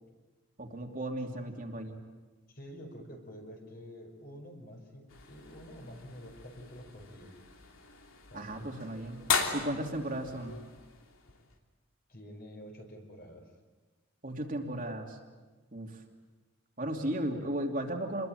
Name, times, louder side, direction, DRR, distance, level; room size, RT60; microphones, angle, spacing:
voice 1, 0.6-2.0 8.3-9.2 9.5-10.6 14.2-15.2 15.7-16.0 16.8-18.3, right 1 dB, 40° right, 1 dB, 2.8 m, -35 dB
voice 2, 2.5-7.3 8.3-8.8 10.1-10.2 12.1-13.5, equal, 50° left, 3 dB, 5.2 m, -48 dB
sound 1, 5.1-11.6, left 5 dB, 80° left, 3.2 m, -38 dB
27.5 x 22.0 x 9.1 m, 1.3 s
head